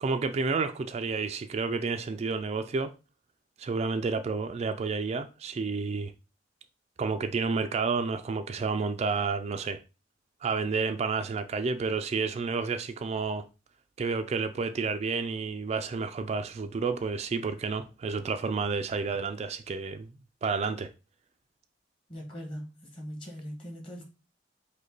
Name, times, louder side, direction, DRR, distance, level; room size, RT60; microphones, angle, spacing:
voice 1, 0.0-2.9 3.6-6.1 7.0-9.8 10.4-13.4 14.0-20.1 20.4-20.9, right 4 dB, 35° right, 0.3 m, -30 dB
voice 2, 22.1-24.0, equal, 30° left, 1.4 m, -41 dB
5.1 x 2.2 x 3.9 m
head